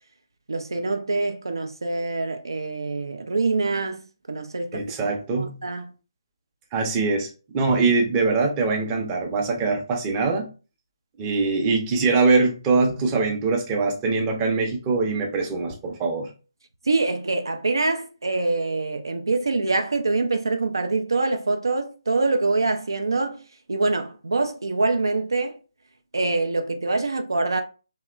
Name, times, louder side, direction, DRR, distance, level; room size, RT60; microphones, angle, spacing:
voice 1, 0.5-4.0 4.3-4.9 5.3-5.9 16.8-23.4 23.7-25.6 26.1-27.6, right 3 dB, 70° right, 0.3 m, -25 dB
voice 2, 4.7-5.6 6.7-7.3 7.5-10.5 11.2-16.3, right 4 dB, 20° right, 0.5 m, -23 dB
2.9 x 2.1 x 2.4 m
figure-of-eight pair, 145°, 2 cm